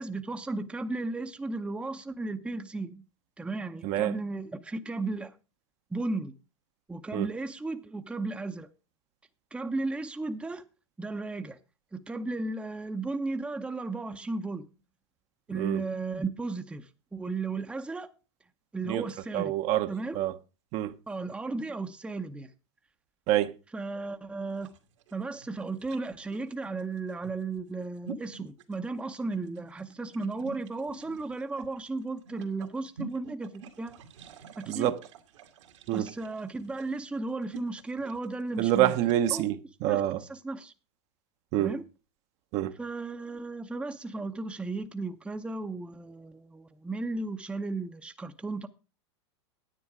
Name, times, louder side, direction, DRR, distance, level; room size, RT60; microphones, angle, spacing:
voice 1, 0.0-3.0 3.4-5.3 5.9-6.3 6.9-8.7 9.5-10.6 11.0-11.6 11.9-14.7 15.5-18.1 18.7-19.5 19.9-20.3 21.1-22.5 23.7-24.7 25.1-34.0 34.6-34.9 35.9-39.0 39.3-39.4 39.8-40.7 41.6-41.8 42.8-48.7, right 3 dB, 5° right, 0.7 m, -35 dB
voice 2, 19.3-19.9 20.1-20.3 20.7-20.9 23.3-23.5 34.7-35.0 35.9-36.1 38.6-40.2 41.5-41.7 42.5-42.7, right 13 dB, 45° right, 0.9 m, -26 dB
sound 1, 24.5-39.3, right 6 dB, 75° right, 2.0 m, -49 dB
10.0 x 9.2 x 4.8 m
hypercardioid pair, 115°, 15 cm